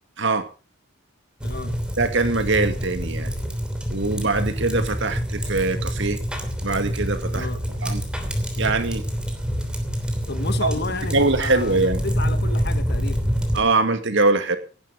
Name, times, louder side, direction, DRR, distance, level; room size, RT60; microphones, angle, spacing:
voice 1, 0.2-0.5 2.0-3.3 3.9-6.2 6.6-7.5 7.8-8.0 8.6-9.0 10.6-10.7 11.1-12.0 13.5-14.6, right 3 dB, 60° right, 9 dB, 2.1 m, -22 dB
voice 2, 1.4-1.7 7.3-7.6 10.3-13.2, left 3 dB, 50° left, 10 dB, 1.7 m, -32 dB
sound 1, 1.4-13.6, equal, 5° right, 3.1 m, -26 dB
17.5 x 11.0 x 5.2 m, 0.35 s
head